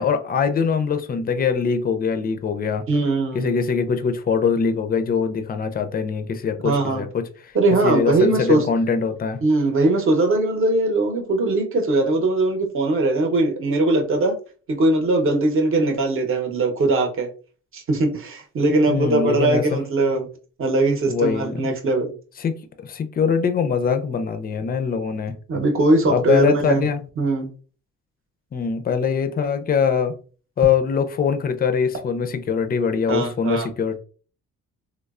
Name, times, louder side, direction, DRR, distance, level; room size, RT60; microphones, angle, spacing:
voice 1, 0.0-2.8 3.3-7.3 7.8-9.4 18.9-19.8 21.1-21.7 22.4-22.6 22.8-25.3 26.1-27.1 28.5-30.2 30.6-34.0, left 6 dB, 30° left, 0.4 m, -22 dB
voice 2, 2.9-3.5 6.6-7.0 7.5-8.6 9.4-14.4 14.7-17.3 17.7-20.3 20.6-22.1 25.5-26.9 27.2-27.5 33.1-33.7, right 2 dB, 45° right, 0.7 m, -20 dB
3.1 x 2.0 x 2.3 m
cardioid pair, 90°, 30 cm